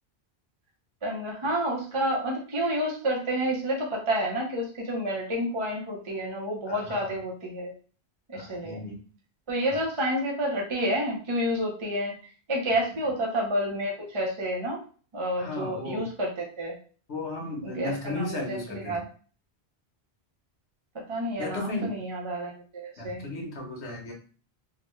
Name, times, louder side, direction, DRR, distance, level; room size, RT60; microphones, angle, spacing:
voice 1, 1.0-7.7 8.3-8.8 9.5-14.8 15.1-16.7 17.6-19.1 21.1-23.2, equal, 35° right, -1 dB, 0.6 m, -29 dB
voice 2, 6.7-7.2 8.3-9.0 9.7-9.8 15.4-16.1 17.1-19.0 21.4-22.0 23.0-24.1, left 2 dB, 85° left, 0 dB, 1.3 m, -35 dB
3.5 x 2.1 x 3.1 m, 0.40 s
omnidirectional pair, 1.1 m